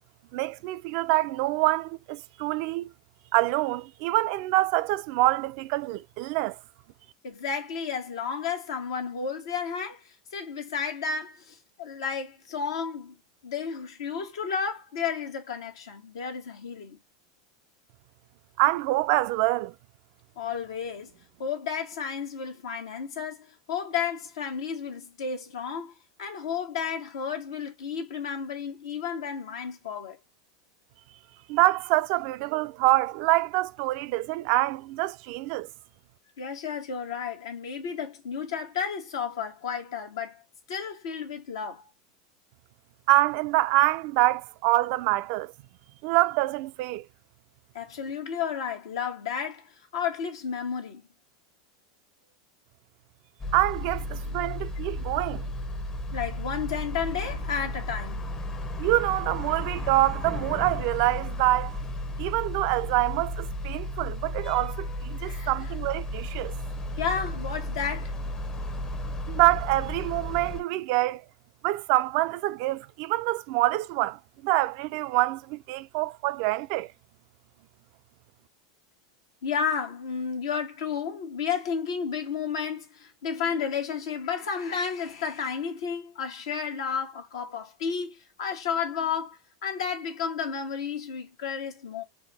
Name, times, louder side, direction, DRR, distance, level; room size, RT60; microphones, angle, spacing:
voice 1, 0.3-2.9 3.3-6.6 18.6-19.7 31.5-35.7 43.1-45.5 46.0-47.0 53.5-55.5 58.8-61.8 62.2-66.5 69.3-71.2 71.6-76.9, right 18 dB, 60° right, 0.4 m, -26 dB
voice 2, 7.2-13.1 13.4-17.0 20.4-21.1 21.4-25.9 26.2-30.2 36.4-40.4 40.7-41.8 47.7-51.0 54.3-54.7 56.1-58.2 65.2-65.5 67.0-68.1 79.4-92.0, left 6 dB, 75° left, 1.1 m, -32 dB
sound 1, 53.4-70.6, left 1 dB, 25° left, 0.7 m, -34 dB
4.2 x 2.1 x 3.3 m
hypercardioid pair, 100°, 2 cm